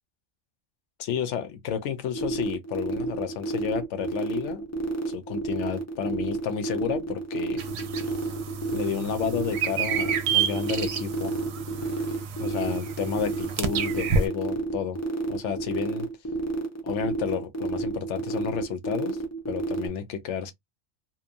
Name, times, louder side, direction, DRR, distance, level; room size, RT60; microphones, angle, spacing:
voice 1, 1.0-4.6 5.1-7.6 8.7-11.3 12.4-15.0 15.3-16.1 16.8-19.2 19.5-20.5, left 8 dB, 85° left, 0.9 m, -31 dB
sound 1, 2.1-19.9, right 2 dB, 25° left, 0.3 m, -32 dB
sound 2, 7.6-14.3, right 6 dB, 65° right, 0.8 m, -30 dB
2.9 x 2.0 x 2.5 m
omnidirectional pair, 1.2 m